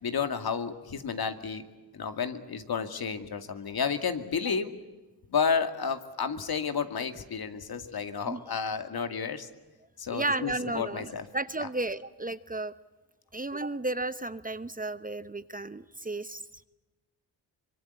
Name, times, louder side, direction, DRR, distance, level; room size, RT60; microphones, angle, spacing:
voice 1, 0.0-1.6 1.9-4.7 5.3-9.5 10.0-11.3, left 6 dB, 60° left, 8 dB, 2.4 m, -31 dB
voice 2, 10.1-12.7 13.3-16.6, right 2 dB, 20° right, 13 dB, 1.0 m, -33 dB
25.0 x 23.0 x 8.3 m, 1.2 s
cardioid pair, 65°, 42 cm